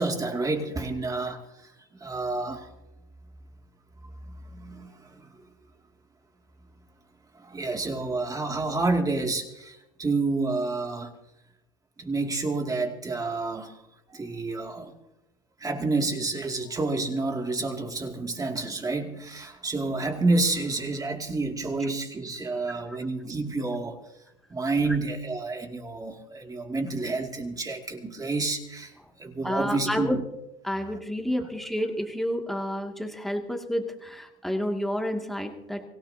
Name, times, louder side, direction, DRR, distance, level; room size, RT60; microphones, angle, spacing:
voice 1, 0.0-1.4 2.0-2.7 4.5-5.3 7.4-11.1 12.0-13.8 14.1-14.9 15.6-24.0 24.5-28.9 29.2-30.2, right 3 dB, 20° right, 3 dB, 2.5 m, -29 dB
voice 2, 29.4-30.2 30.6-35.8, equal, ahead, 3 dB, 2.3 m, -30 dB
25.0 x 17.0 x 2.8 m, 0.89 s
supercardioid pair, 110°, 18 cm